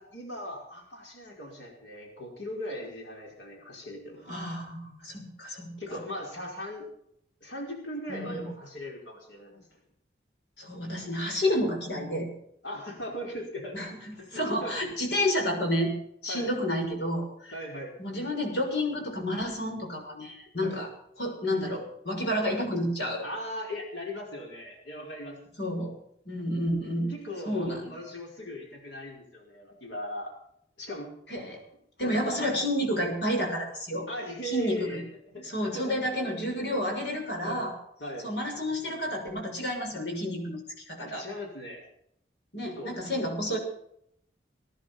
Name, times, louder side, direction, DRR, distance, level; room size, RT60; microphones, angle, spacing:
voice 1, 0.0-4.2 5.8-6.9 7.4-9.7 12.6-13.8 14.2-14.8 16.3-16.5 17.5-17.9 20.6-20.8 23.2-25.4 27.1-30.3 30.8-31.1 32.0-32.5 34.1-36.5 37.4-37.7 38.0-38.3 41.0-41.8 42.6-43.0 43.5-43.6, equal, 85° left, 0 dB, 5.0 m, -39 dB
voice 2, 4.3-5.7 8.1-8.5 10.6-12.3 13.7-13.9 14.3-15.9 16.2-17.5 18.0-20.9 21.2-23.2 25.6-25.9 26.2-27.1 27.5-28.0 31.3-31.6 32.0-34.1 34.4-35.0 35.4-37.7 38.2-40.6 40.9-41.2 42.5-43.6, left 1 dB, 70° left, 2 dB, 6.5 m, -30 dB
21.0 x 10.5 x 5.9 m, 0.71 s
head